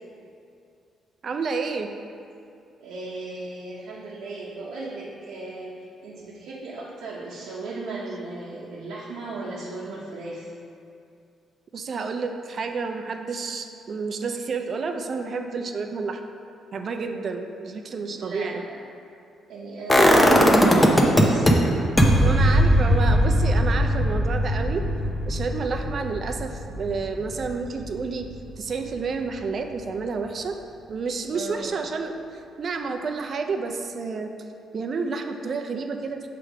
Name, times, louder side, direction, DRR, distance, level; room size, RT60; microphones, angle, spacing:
voice 1, 1.2-1.9 11.7-16.2 16.7-18.6 22.2-24.8 25.3-28.3 28.6-30.6 30.9-34.3 34.7-36.3, right 4 dB, 50° right, 5 dB, 0.5 m, -30 dB
voice 2, 2.8-10.5 17.8-18.8 19.5-21.7 31.3-31.7, right 3 dB, 80° right, -6 dB, 0.8 m, -36 dB
sound 1, 19.9-21.5 22.0-27.8 28.1-28.2, equal, 15° left, 0.7 m, -19 dB
6.2 x 3.4 x 4.9 m, 2.5 s
cardioid pair, 90°, 0 cm